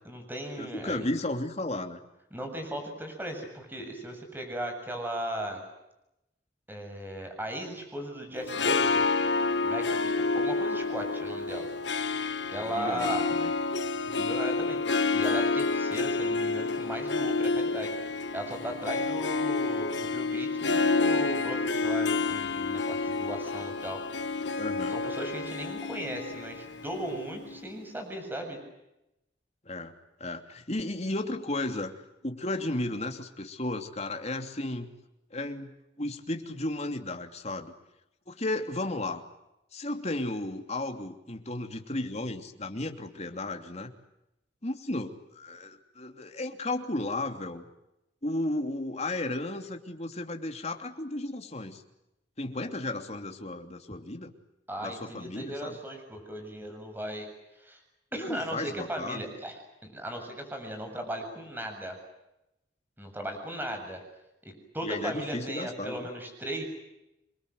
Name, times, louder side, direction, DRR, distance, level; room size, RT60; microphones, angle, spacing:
voice 1, 0.0-1.0 2.3-5.6 6.7-9.3 9.6-11.7 12.5-13.3 14.1-14.8 15.1-17.9 18.3-24.0 24.9-28.6 54.7-57.3 57.6-57.8 58.1-59.6 59.8-62.0 63.0-64.0 64.4-66.6, right 1 dB, 10° right, 4 dB, 7.4 m, -37 dB
voice 2, 0.6-2.0 12.6-13.5 24.6-25.0 29.6-29.9 30.2-32.0 32.2-34.9 35.3-37.7 38.3-39.2 39.7-43.9 44.6-47.6 48.2-51.8 52.4-54.3 54.8-55.7 58.1-59.2 64.8-66.1, left 2 dB, 40° left, 5 dB, 3.0 m, -34 dB
Harp, 8.3-27.7, left 3 dB, 80° left, 1.2 m, -29 dB
28.5 x 23.5 x 8.0 m, 0.88 s
head